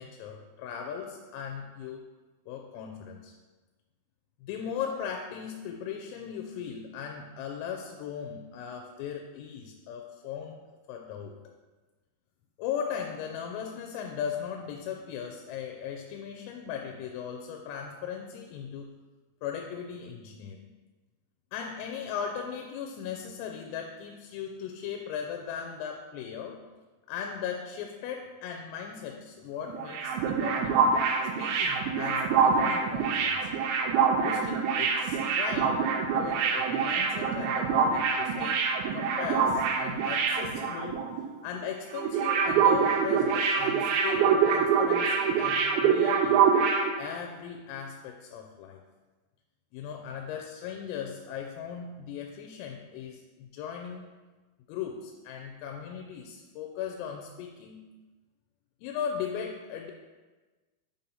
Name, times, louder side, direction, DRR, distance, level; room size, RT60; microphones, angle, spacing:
voice 1, 0.0-2.0 2.5-3.3 4.4-10.6 10.9-11.4 12.6-18.9 19.4-20.6 21.5-26.6 27.1-30.8 31.4-33.5 34.2-41.1 41.4-46.4 47.0-48.8 49.7-54.1 54.7-57.8 58.8-59.9, left 7 dB, 85° left, 2 dB, 3.1 m, -38 dB
sound 1, 29.7-41.2 41.5-41.7 41.9-46.9, right 6 dB, 90° right, 3.4 m, -25 dB
7.6 x 2.8 x 5.3 m, 1.3 s
omnidirectional pair, 5.9 m